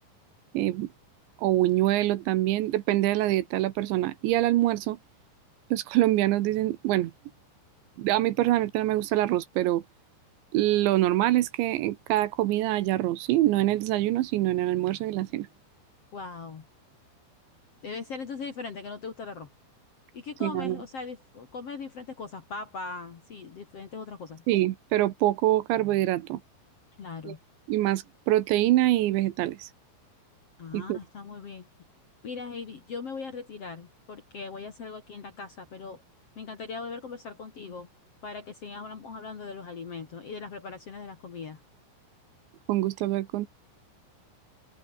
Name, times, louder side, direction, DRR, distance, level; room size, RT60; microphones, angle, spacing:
voice 1, 0.5-0.9 1.4-5.0 5.7-7.1 8.0-9.8 10.5-15.5 20.4-20.8 24.5-26.4 27.3-27.4 27.7-29.7 30.7-31.0 42.7-43.5, right 15 dB, 80° right, 3.3 m, -25 dB
voice 2, 16.1-16.7 17.8-19.5 20.1-24.4 27.0-27.4 30.6-31.7 32.2-36.0 36.4-37.9 38.2-41.6, left 4 dB, 45° left, 2.1 m, -39 dB
omnidirectional pair, 5.5 m